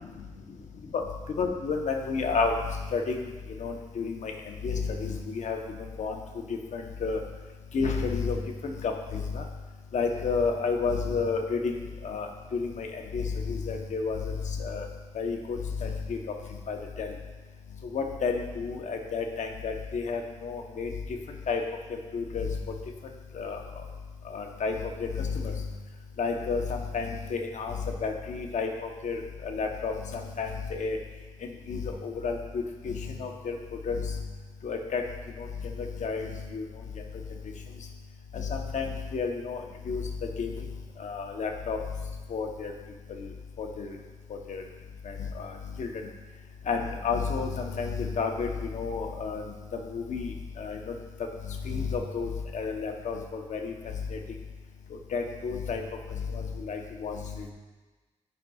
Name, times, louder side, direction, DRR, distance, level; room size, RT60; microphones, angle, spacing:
voice 1, 1.4-2.5 2.9-3.2 3.6-4.3 4.6-5.6 6.0-6.1 6.7-7.2 7.7-8.4 8.6-9.4 9.9-11.7 12.0-12.9 13.1-14.9 15.1-16.2 16.7-17.1 17.9-20.9 21.5-21.6 22.1-22.6 23.3-23.6 24.3-24.7 25.2-25.5 26.2-27.7 28.0-28.7 29.0-31.0 31.7-33.6 33.9-34.1 34.6-35.0 35.8-36.6 38.3-39.6 39.9-40.0 40.4-40.5 41.0-41.8 42.3-42.7 43.6-43.9 44.5-44.6 45.4-45.5 45.8-45.9 46.7-49.4 49.9-50.3 50.6-50.8 51.6-53.7 54.1-54.2 55.1-55.8 56.3-57.4, left 5 dB, 70° left, 2 dB, 0.9 m, -31 dB
10.5 x 5.3 x 2.3 m, 1.3 s
cardioid pair, 75°, 13 cm